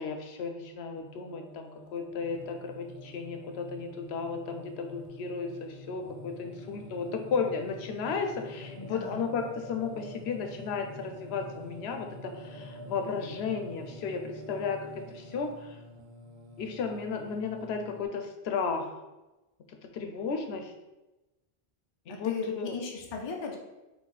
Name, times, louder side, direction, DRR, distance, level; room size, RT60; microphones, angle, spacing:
voice 1, 0.0-14.8 15.1-15.8 16.6-18.9 19.7-20.7 22.1-22.8, left 5 dB, 85° left, 5 dB, 0.8 m, -34 dB
Singing, 0.9-18.0, left 1 dB, 80° right, 0.9 m, -47 dB
voice 2, 8.8-9.2 22.1-23.6, left 4 dB, 35° left, 1 dB, 0.5 m, -37 dB
4.0 x 2.7 x 4.0 m, 1.0 s
omnidirectional pair, 1.0 m